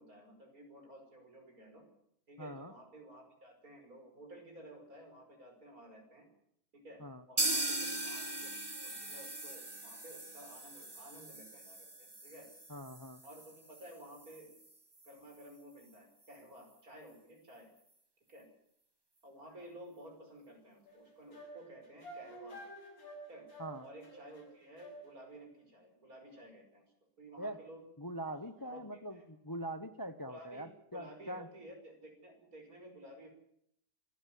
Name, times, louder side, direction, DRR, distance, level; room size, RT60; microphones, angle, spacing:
voice 1, 0.0-1.8 2.3-6.3 6.7-7.0 7.3-8.5 8.8-12.5 13.2-14.5 15.0-17.7 18.3-18.4 19.2-22.6 23.3-23.5 23.8-26.8 27.2-27.8 28.3-29.2 30.3-30.7 30.9-33.3, right 1 dB, 70° right, 3 dB, 6.0 m, -54 dB
voice 2, 2.4-2.7 7.0-7.2 12.7-13.2 23.6-23.8 27.4-27.6 28.0-31.5, right 1 dB, 15° left, 11 dB, 0.9 m, -43 dB
sound 1, 7.4-15.1 15.4-15.5 15.8-15.9 16.3-16.4, right 2 dB, 15° right, 1.5 m, -40 dB
sound 2, 20.9-25.4, right 1 dB, 70° left, 7.8 m, -51 dB
25.5 x 12.0 x 9.4 m, 0.73 s
omnidirectional pair, 1.6 m